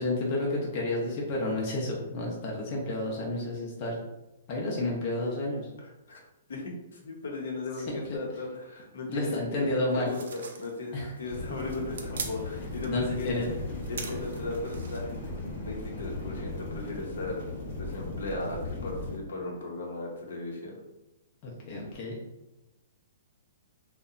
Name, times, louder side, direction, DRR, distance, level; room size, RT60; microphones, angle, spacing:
voice 1, 0.0-4.0 4.5-5.7 7.9-8.2 9.1-10.1 10.9-11.1 12.9-13.6 21.4-22.2, left 2 dB, 25° left, -3 dB, 0.5 m, -31 dB
voice 2, 5.8-6.2 6.5-13.3 13.9-20.8, left 2 dB, 75° left, -1 dB, 0.7 m, -37 dB
sound 1, 10.1-15.0, right 5 dB, 65° right, 0.4 m, -43 dB
sound 2, 11.3-19.2, left 2 dB, 45° left, 0.9 m, -37 dB
2.7 x 2.1 x 2.4 m, 0.96 s
hypercardioid pair, 170°, 0 cm